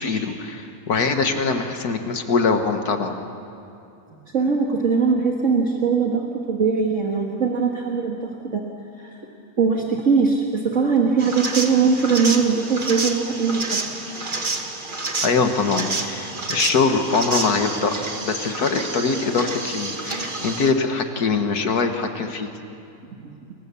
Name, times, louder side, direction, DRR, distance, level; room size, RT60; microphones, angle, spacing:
voice 1, 0.0-3.2 15.2-17.9 18.2-22.5, left 4 dB, 80° left, 6 dB, 2.0 m, -23 dB
voice 2, 4.3-8.6 9.0-9.2 9.6-13.8 23.2-23.3, right 5 dB, 55° right, 0 dB, 2.1 m, -21 dB
sound 1, 11.2-20.7, right 3 dB, 35° right, 1.9 m, -29 dB
29.0 x 23.5 x 7.1 m, 2.7 s
omnidirectional pair, 1.6 m